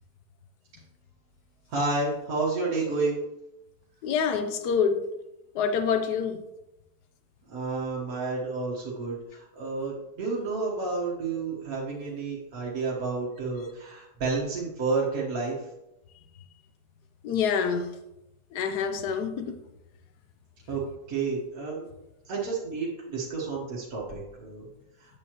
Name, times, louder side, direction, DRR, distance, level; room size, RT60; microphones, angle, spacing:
voice 1, 1.7-3.2 7.5-15.5 20.7-20.8 21.1-21.9 22.3-24.6, right 3 dB, 65° right, 1.7 m, -30 dB
voice 2, 4.0-5.0 5.5-6.4 17.2-17.9 18.5-19.6, left 6 dB, 85° left, 1.2 m, -26 dB
8.3 x 6.6 x 3.0 m
omnidirectional pair, 1.7 m